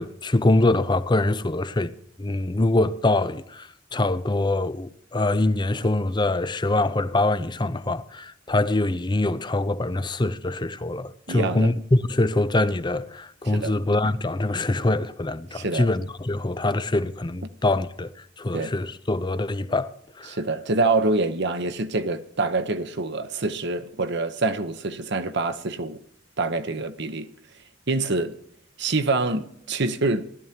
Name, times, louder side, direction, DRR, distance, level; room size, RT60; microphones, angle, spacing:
voice 1, 0.0-1.9 2.2-18.1 18.4-19.9 20.2-20.3, left 2 dB, 20° left, 0.6 m, -24 dB
voice 2, 11.3-11.7 13.4-13.8 15.5-15.9 18.5-18.7 20.3-26.0 26.4-27.3 27.9-28.3 28.8-30.2, right 3 dB, 60° right, 1.0 m, -26 dB
19.0 x 12.5 x 2.9 m
head